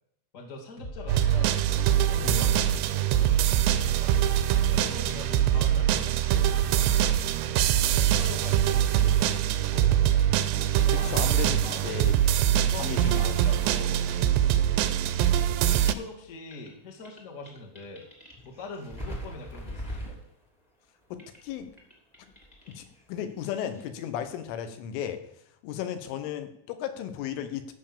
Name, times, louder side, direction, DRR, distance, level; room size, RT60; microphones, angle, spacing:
voice 1, 0.3-4.3 4.7-7.2 7.8-10.3 10.8-12.1 12.6-15.3 15.7-18.0 18.4-20.2 22.6-22.7, left 3 dB, 60° left, 0 dB, 0.8 m, -43 dB
sound 1, 0.8-7.8 8.3-8.4, left 2 dB, 40° left, 1.4 m, -46 dB
sound 2, 1.1-15.9, right 11 dB, 85° right, 2.4 m, -23 dB
voice 2, 2.2-2.6 10.9-12.1 12.5-13.3 21.1-21.7 22.8-25.2 25.6-27.7, left 9 dB, 85° left, 9 dB, 3.7 m, -35 dB
sound 3, 4.3-14.2 14.5-23.8, equal, 20° left, 1.1 m, -47 dB
14.5 x 5.7 x 6.9 m, 0.80 s
omnidirectional pair, 5.5 m